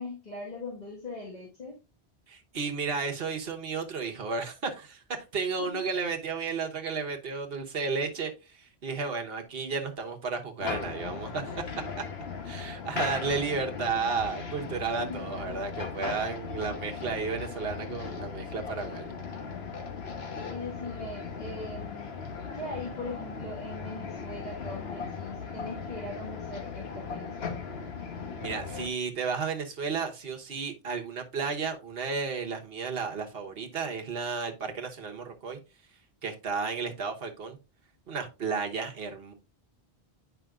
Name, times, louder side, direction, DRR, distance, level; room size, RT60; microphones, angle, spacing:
voice 1, 0.0-1.8 5.6-5.8 13.4-13.6 15.0-15.2 20.4-22.1 22.5-27.5, left 2 dB, 40° left, 1.8 m, -40 dB
voice 2, 2.3-5.0 5.3-11.6 12.4-19.1 28.4-35.6 36.2-37.6 38.1-39.3, right 5 dB, 65° right, 1.3 m, -33 dB
sound 1, 10.6-28.9, left 5 dB, 75° left, 1.3 m, -38 dB
9.1 x 5.6 x 2.4 m
omnidirectional pair, 1.1 m